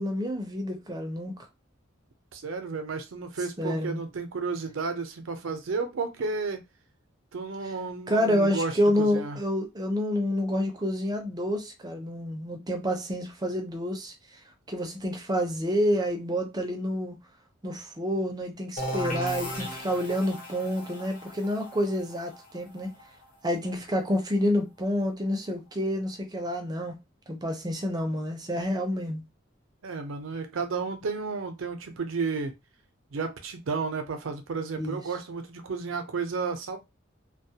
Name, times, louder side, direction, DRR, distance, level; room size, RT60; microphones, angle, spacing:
voice 1, 0.0-1.3 3.6-4.0 8.1-14.1 14.7-17.2 17.6-22.9 23.4-26.9 27.3-29.2 34.8-35.0, equal, 20° right, 0.5 m, -28 dB
voice 2, 2.3-6.6 7.3-8.7 9.0-9.4 29.8-32.5 33.1-36.8, right 4 dB, 80° right, 0.5 m, -32 dB
sound 1, 18.8-24.3, equal, 45° left, 0.7 m, -37 dB
2.2 x 2.0 x 2.7 m
head